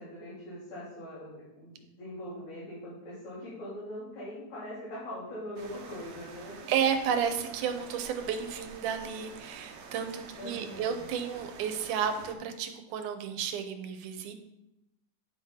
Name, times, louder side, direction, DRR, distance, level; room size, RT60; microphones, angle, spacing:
voice 1, 0.0-6.7 10.4-11.1, left 1 dB, 65° left, -10 dB, 3.8 m, -42 dB
sound 1, 5.6-12.4, right 5 dB, 70° right, 2.0 m, -48 dB
voice 2, 6.7-14.3, right 7 dB, 90° right, 7 dB, 2.3 m, -32 dB
9.6 x 3.7 x 5.7 m, 0.88 s
omnidirectional pair, 3.5 m